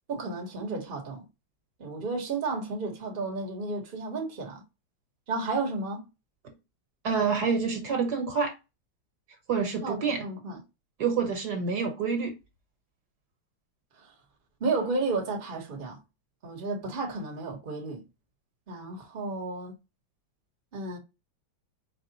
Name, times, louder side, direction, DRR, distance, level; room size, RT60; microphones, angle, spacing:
voice 1, 0.1-1.2 1.8-4.6 5.3-6.1 9.8-10.6 14.6-16.0 16.4-18.0 18.7-19.7 20.7-21.0, right 3 dB, 35° right, 1.0 m, -32 dB
voice 2, 7.0-8.5 9.5-10.3 11.0-12.3, right 5 dB, 60° right, 1.5 m, -27 dB
4.8 x 2.0 x 3.9 m
omnidirectional pair, 2.1 m